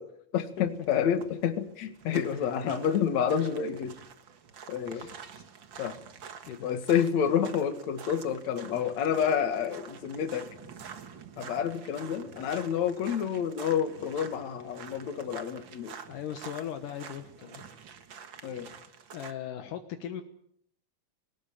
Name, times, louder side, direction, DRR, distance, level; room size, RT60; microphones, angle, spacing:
voice 1, 0.0-3.9 4.7-5.1 5.8-5.9 6.6-10.5 11.4-16.0 18.4-18.7, left 8 dB, 60° left, 8 dB, 3.0 m, -29 dB
sound 1, 0.5-19.3, right 7 dB, 50° right, 1.6 m, -48 dB
voice 2, 4.9-5.2 6.5-6.7 16.1-17.6 19.1-20.2, left 10 dB, 75° left, 7 dB, 2.8 m, -38 dB
21.0 x 19.5 x 8.9 m, 0.69 s
omnidirectional pair, 3.9 m